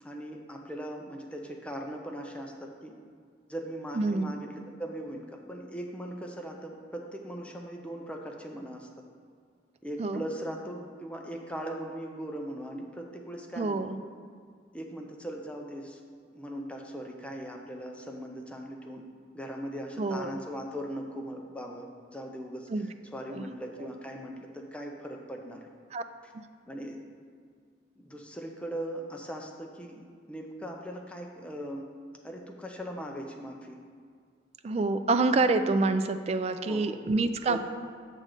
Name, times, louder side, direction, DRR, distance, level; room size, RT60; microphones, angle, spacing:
voice 1, 0.0-2.9 3.5-8.9 9.8-13.8 14.7-16.0 16.3-19.0 19.3-25.7 26.2-26.3 26.7-27.0 28.0-31.9 32.2-33.8 36.7-37.0 37.5-37.6, equal, 5° left, 1 dB, 0.6 m, -39 dB
voice 2, 4.0-4.3 10.0-10.2 13.6-14.0 20.0-20.4 22.7-22.9 23.3-23.5 25.9-26.0 34.6-37.6, right 3 dB, 35° right, 9 dB, 0.3 m, -27 dB
7.4 x 3.8 x 6.5 m, 2.1 s
head